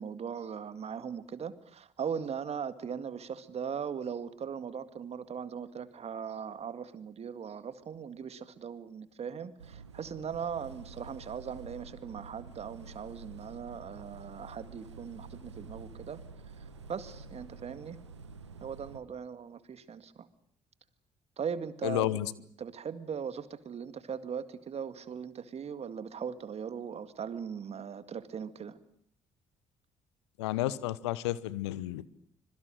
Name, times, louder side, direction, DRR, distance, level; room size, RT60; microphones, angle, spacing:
voice 1, 0.0-16.2 16.9-18.0 18.6-20.3 21.4-22.1 22.6-28.8, right 7 dB, 45° right, 13 dB, 2.0 m, -39 dB
sound 1, 9.6-19.0, right 4 dB, 90° right, 1.3 m, -49 dB
voice 2, 21.8-22.3 30.4-32.1, left 15 dB, 80° left, 20 dB, 1.0 m, -31 dB
25.5 x 22.5 x 7.6 m, 0.65 s
figure-of-eight pair, 45°, 14 cm